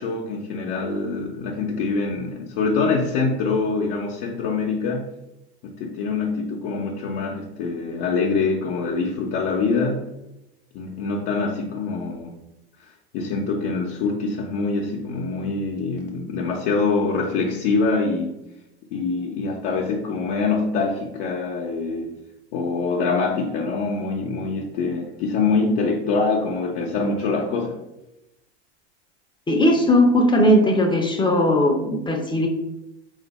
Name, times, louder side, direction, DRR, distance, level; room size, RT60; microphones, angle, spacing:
voice 1, 0.0-5.1 5.6-10.1 10.7-12.4 13.1-18.4 18.9-22.1 22.5-27.8, left 4 dB, 60° left, -2 dB, 0.7 m, -24 dB
voice 2, 29.5-32.5, left 1 dB, 15° left, 3 dB, 0.6 m, -18 dB
3.3 x 2.5 x 4.0 m, 0.90 s
hypercardioid pair, 90°, 33 cm